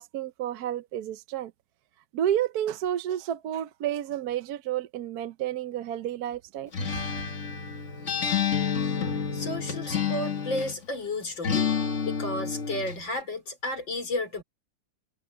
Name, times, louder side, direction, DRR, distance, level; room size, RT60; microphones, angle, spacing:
voice 1, 0.0-1.5 2.1-6.7, right 11 dB, 65° right, 1.1 m, -30 dB
Acoustic guitar, 6.7-10.8 11.4-13.0, left 7 dB, 40° left, 1.8 m, -29 dB
voice 2, 9.3-11.7 12.1-14.4, left 1 dB, 85° left, 5.5 m, -32 dB
omnidirectional pair, 2.0 m